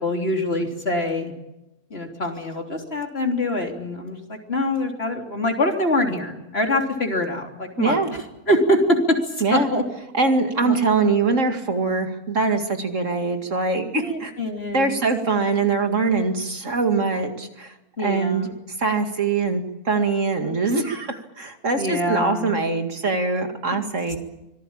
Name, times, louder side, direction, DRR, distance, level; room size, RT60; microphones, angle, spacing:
voice 1, 0.0-1.3 1.9-8.0 8.5-9.2 9.5-9.8 10.6-10.8 14.0-15.0 18.0-18.5 21.8-22.5, left 1 dB, 45° left, 3 dB, 3.6 m, -24 dB
voice 2, 7.8-8.1 9.4-9.7 10.1-14.3 14.7-17.7 18.0-18.5 18.8-24.2, right 4 dB, 55° right, 5 dB, 2.6 m, -23 dB
25.5 x 18.5 x 8.8 m, 0.93 s
omnidirectional pair, 1.5 m